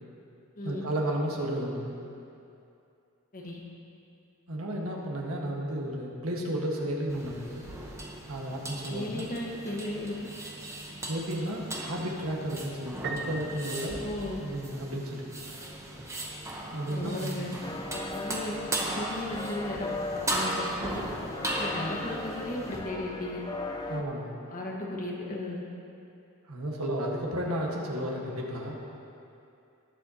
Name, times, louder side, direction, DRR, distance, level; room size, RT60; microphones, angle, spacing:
voice 1, 0.6-2.0 4.5-7.6 8.3-9.3 11.1-14.0 14.4-15.3 16.7-17.6 23.9-24.3 26.5-28.8, right 1 dB, 70° right, -1 dB, 1.5 m, -33 dB
sound 1, 7.1-22.8, right 1 dB, 15° right, 1.0 m, -37 dB
voice 2, 8.9-10.2 14.0-14.4 16.9-17.6 17.9-21.0 21.5-23.4 24.5-25.6, left 1 dB, 40° left, -2 dB, 1.4 m, -35 dB
Piano, 13.0-14.9, right 4 dB, 50° right, 0.6 m, -40 dB
sound 2, 17.6-24.0, left 2 dB, 20° left, 0.4 m, -38 dB
19.0 x 7.6 x 2.9 m, 2.6 s
head